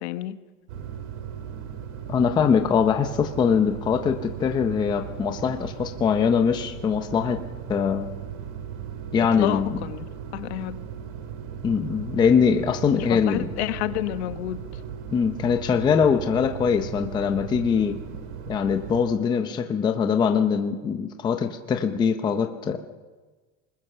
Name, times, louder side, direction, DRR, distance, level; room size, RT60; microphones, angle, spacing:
voice 1, 0.0-0.3 9.2-10.1 10.3-10.8 13.0-14.6, left 14 dB, 55° left, 10 dB, 1.3 m, -29 dB
sound 1, 0.7-19.0, right 8 dB, 65° right, 2.4 m, -37 dB
voice 2, 2.1-7.4 7.7-8.1 9.1-9.8 11.6-13.5 15.1-18.0 18.5-22.8, left 6 dB, 10° left, 6 dB, 0.7 m, -22 dB
26.5 x 20.5 x 6.7 m, 1.3 s
supercardioid pair, 175°, 38 cm